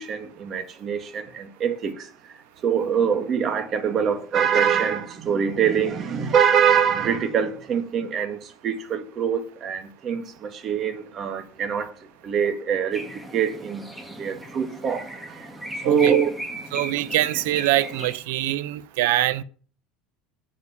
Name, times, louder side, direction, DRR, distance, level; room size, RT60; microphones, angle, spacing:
voice 1, 0.0-2.1 2.6-11.9 12.2-13.0 13.3-15.5 15.8-16.3, right 7 dB, 35° right, 1.9 m, -24 dB
sound 1, 12.9-18.2, right 1 dB, 5° right, 1.8 m, -37 dB
voice 2, 15.8-16.2 16.7-19.4, right 15 dB, 85° right, 0.8 m, -24 dB
8.2 x 7.4 x 8.6 m
cardioid pair, 145°, 0 cm